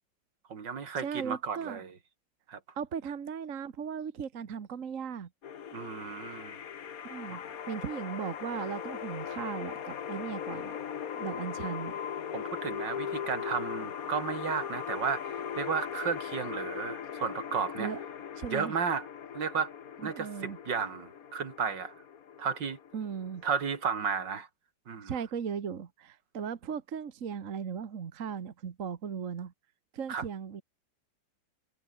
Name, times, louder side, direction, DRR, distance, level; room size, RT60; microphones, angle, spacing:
voice 1, 0.5-1.9 2.5-2.6 5.7-6.6 12.3-17.9 18.5-19.1 19.3-19.7 20.0-21.9 22.4-22.8 23.4-24.5 24.9-25.1 30.1-30.2, right 6 dB, 70° right, 2.8 m, -33 dB
voice 2, 1.0-1.8 2.7-5.3 7.0-10.8 11.1-12.0 17.8-18.0 18.4-18.7 20.0-20.6 22.9-23.4 25.0-29.5 29.9-30.6, right 7 dB, 45° right, 1.6 m, -37 dB
sound 1, 5.4-24.4, left 8 dB, 50° left, 1.5 m, -39 dB
omnidirectional pair, 2.0 m